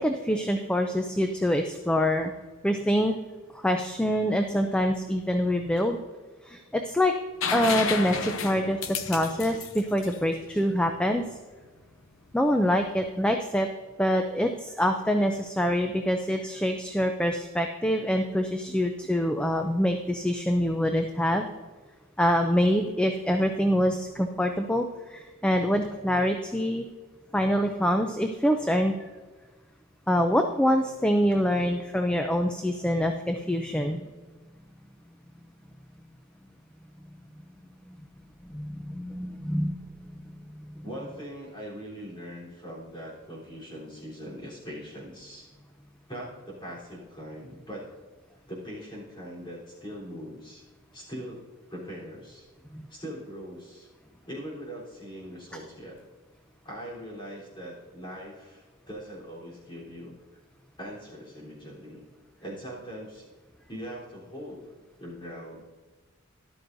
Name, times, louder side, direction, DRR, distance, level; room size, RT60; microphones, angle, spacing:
voice 1, 0.0-2.3 2.6-3.1 3.5-6.0 6.5-7.1 7.5-11.3 12.3-13.7 14.0-21.4 22.2-26.8 27.3-29.1 30.1-34.1 37.9-38.0 38.5-39.8 40.5-40.8 52.7-52.8, equal, 5° left, 5 dB, 0.4 m, -25 dB
sound 1, 7.4-11.1 13.0-13.1, left 5 dB, 70° left, 0.8 m, -32 dB
voice 2, 40.8-45.5 46.1-47.9 48.5-50.6 50.9-51.4 51.7-52.4 52.9-53.9 54.3-56.0 56.6-60.1 60.8-62.0 62.4-63.2 63.7-64.7 65.0-65.6, equal, 20° left, -5 dB, 3.6 m, -41 dB
13.0 x 11.5 x 2.6 m, 1.4 s
head